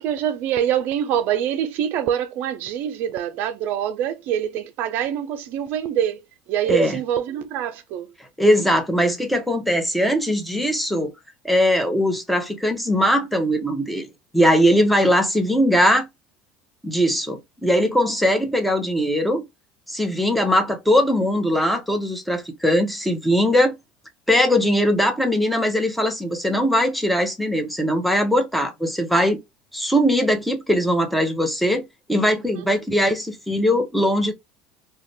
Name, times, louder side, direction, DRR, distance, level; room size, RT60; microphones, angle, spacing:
voice 1, 0.0-6.2 6.5-8.1 32.6-32.7, right 10 dB, 60° right, 0.4 m, -25 dB
voice 2, 8.4-11.1 11.4-14.1 14.3-16.0 16.8-19.4 19.9-23.7 24.3-29.4 29.7-31.8 32.1-34.3, equal, ahead, 0.7 m, -20 dB
2.5 x 2.2 x 3.1 m
hypercardioid pair, 80°, 4 cm